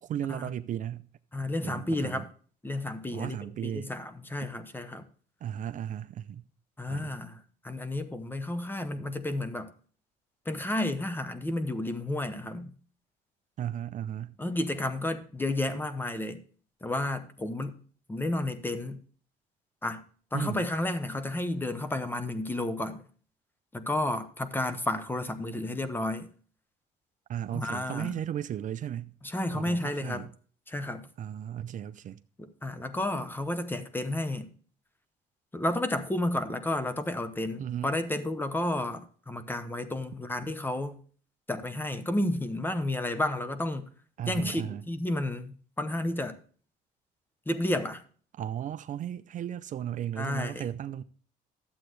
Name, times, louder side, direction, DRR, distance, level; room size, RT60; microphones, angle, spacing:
voice 1, 0.0-1.1 1.6-2.2 3.1-3.9 5.4-6.5 6.9-7.1 13.6-14.4 20.3-20.7 27.3-29.2 29.5-30.3 31.2-32.2 37.6-37.9 44.2-44.8 48.4-51.0, right 10 dB, 50° right, 0.5 m, -35 dB
voice 2, 1.3-2.3 2.6-3.4 3.6-5.0 6.8-9.7 10.5-12.7 14.4-16.4 16.8-17.8 18.1-19.0 19.8-20.0 20.3-23.0 23.7-26.3 27.5-28.2 29.2-30.3 30.7-31.1 32.4-34.5 35.5-41.0 41.5-43.9 44.3-46.4 47.5-48.0 50.2-50.6, left 1 dB, 10° left, 0.9 m, -31 dB
12.0 x 7.9 x 3.2 m
cardioid pair, 110°, 17 cm